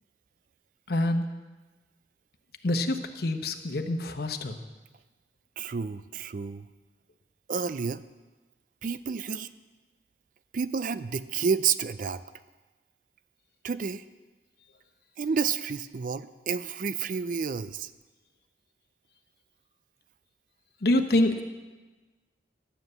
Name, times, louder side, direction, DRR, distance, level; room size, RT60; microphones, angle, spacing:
voice 1, 0.9-1.3 2.6-4.6 20.8-21.4, left 1 dB, 60° left, 6 dB, 1.0 m, -26 dB
voice 2, 5.6-6.7 7.5-8.0 8.8-9.5 10.5-12.2 13.6-14.0 15.2-17.9, right 6 dB, 50° right, 14 dB, 0.4 m, -30 dB
11.0 x 7.6 x 8.0 m, 1.2 s
head